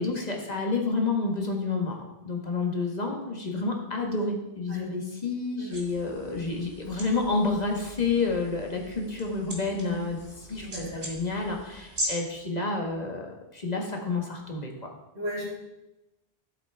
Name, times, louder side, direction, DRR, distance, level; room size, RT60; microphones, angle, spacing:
voice 1, 0.0-2.0 2.2-14.9, left 3 dB, 40° left, 1 dB, 1.5 m, -29 dB
sound 1, 5.7-12.1, equal, 35° right, 1.9 m, -40 dB
voice 2, 10.6-11.0 15.1-15.5, equal, 90° right, -6 dB, 3.8 m, -35 dB
11.5 x 7.9 x 3.4 m, 0.97 s
omnidirectional pair, 1.1 m